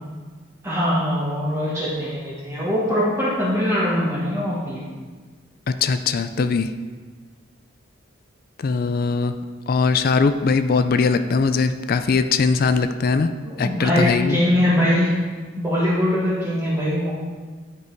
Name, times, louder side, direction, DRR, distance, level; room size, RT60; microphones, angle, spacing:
voice 1, 0.6-4.9 13.4-15.1 15.6-17.1, left 1 dB, 15° right, -8 dB, 1.3 m, -22 dB
voice 2, 5.7-6.7 8.6-9.3 9.7-13.3 13.6-14.4, left 4 dB, 50° left, 10 dB, 0.4 m, -20 dB
9.6 x 5.3 x 4.5 m, 1.4 s
head